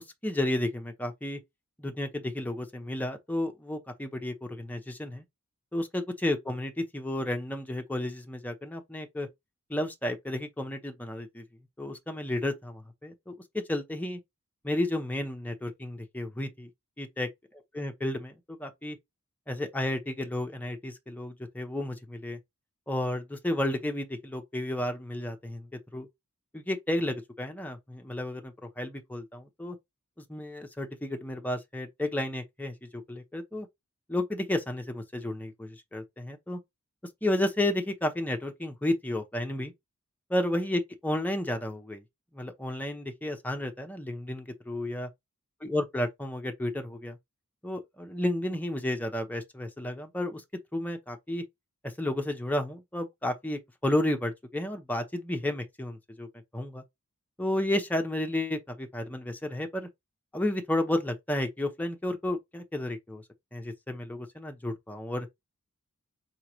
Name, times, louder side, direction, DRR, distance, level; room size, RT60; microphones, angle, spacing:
voice 1, 0.2-1.4 1.8-5.2 5.7-9.3 9.7-11.4 11.8-14.2 14.6-16.7 17.0-17.3 17.7-19.0 19.5-22.4 22.9-25.7 25.9-26.1 26.5-29.8 30.3-33.7 34.1-36.6 37.2-39.7 40.3-42.0 42.3-45.1 45.6-47.2 47.6-50.4 50.7-51.4 51.8-56.3 56.5-56.8 57.4-59.9 60.3-63.2 63.5-65.3, left 1 dB, 5° left, 0.8 m, -32 dB
4.9 x 3.1 x 2.9 m
head